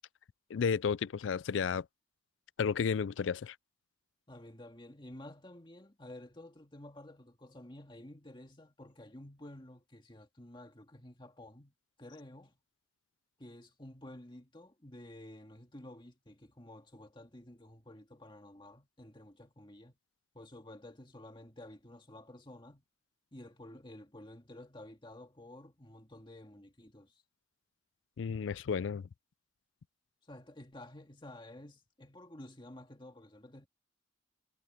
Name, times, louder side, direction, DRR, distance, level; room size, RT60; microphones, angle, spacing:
voice 1, 0.5-1.9 2.6-3.6 28.2-29.1, left 6 dB, 75° left, 0.4 m, -32 dB
voice 2, 4.3-12.6 13.4-20.0 20.3-22.8 23.3-27.2 30.2-33.7, left 1 dB, 25° left, 2.0 m, -52 dB
head